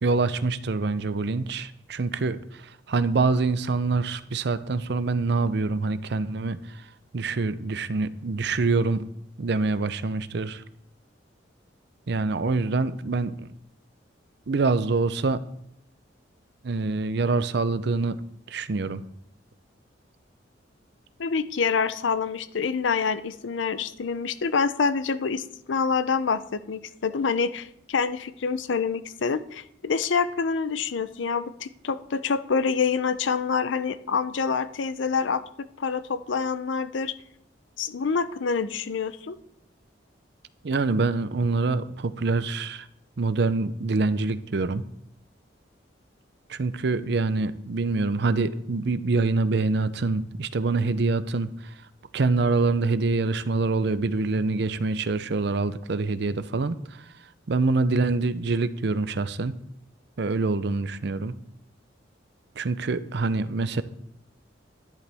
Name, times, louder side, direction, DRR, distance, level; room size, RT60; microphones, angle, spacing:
voice 1, 0.0-6.6 7.1-9.1 9.4-10.6 12.1-13.5 14.5-15.4 16.6-18.2 18.5-19.0 40.6-42.9 43.2-44.8 46.5-51.5 52.1-56.8 57.5-59.6 60.2-61.3 62.6-63.8, right 3 dB, 60° right, 14 dB, 0.5 m, -25 dB
voice 2, 21.2-35.4 35.8-37.1 37.8-39.4, left 5 dB, 80° left, 14 dB, 0.6 m, -26 dB
11.0 x 10.5 x 3.5 m, 0.74 s
head